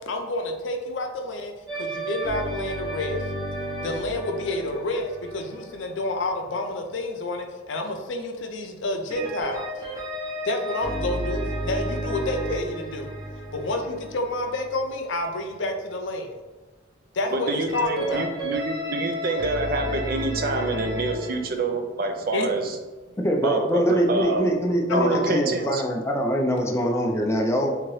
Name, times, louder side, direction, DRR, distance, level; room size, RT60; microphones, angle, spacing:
voice 1, 0.1-3.2 3.8-9.7 10.4-13.1 13.5-16.4 17.1-18.3 22.3-22.5 24.9-25.2, left 2 dB, 70° left, 5 dB, 0.5 m, -29 dB
sound 1, 1.7-6.6 9.1-15.1 17.7-21.4, equal, 20° right, 0.8 m, -32 dB
voice 2, 17.3-22.8 23.4-24.5 24.9-25.8, right 3 dB, 50° right, 4 dB, 0.5 m, -27 dB
voice 3, 23.2-27.8, equal, 15° left, 1 dB, 0.4 m, -23 dB
3.5 x 2.9 x 3.1 m, 1.2 s
head